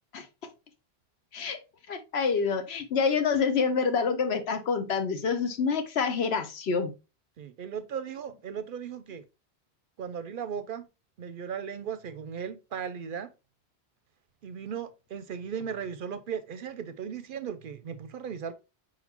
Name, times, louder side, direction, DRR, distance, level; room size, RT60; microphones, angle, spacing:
voice 1, 1.9-6.9, left 5 dB, 75° left, 1.0 m, -27 dB
voice 2, 7.4-9.2 10.0-10.8 11.2-13.3 14.4-18.5, right 7 dB, 60° right, 0.6 m, -37 dB
4.5 x 4.1 x 2.9 m
omnidirectional pair, 1.1 m